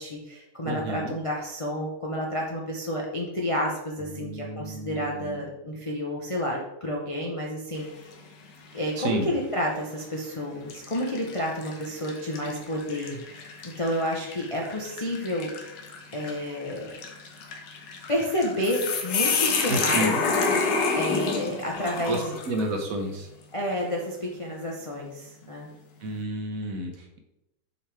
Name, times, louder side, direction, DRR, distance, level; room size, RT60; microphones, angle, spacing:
voice 1, 0.0-7.9 8.7-15.5 16.1-16.9 18.1-20.2 20.9-22.3 23.5-25.7, equal, 55° left, -2 dB, 0.3 m, -30 dB
voice 2, 0.6-1.2 4.0-5.5 9.0-9.3 19.7-20.2 22.1-23.3 26.0-27.2, right 2 dB, 60° right, 3 dB, 1.0 m, -31 dB
sound 1, 7.8-8.2 8.8-8.9 9.8-10.1 10.7-22.7, left 4 dB, 70° left, 1.5 m, -30 dB
6.5 x 4.9 x 3.3 m, 0.89 s
omnidirectional pair, 2.0 m